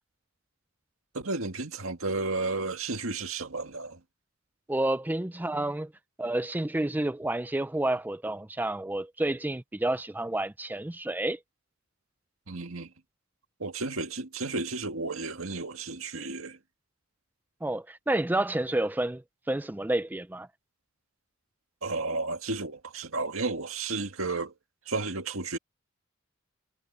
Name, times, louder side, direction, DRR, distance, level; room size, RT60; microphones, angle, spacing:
voice 1, 1.1-4.0 12.5-12.9 13.6-16.6 21.8-24.5 24.9-25.6, right 3 dB, 85° right, 1.9 m, -32 dB
voice 2, 4.7-5.9 6.2-11.4 17.6-19.2 19.5-20.5, right 1 dB, 10° right, 0.4 m, -29 dB
head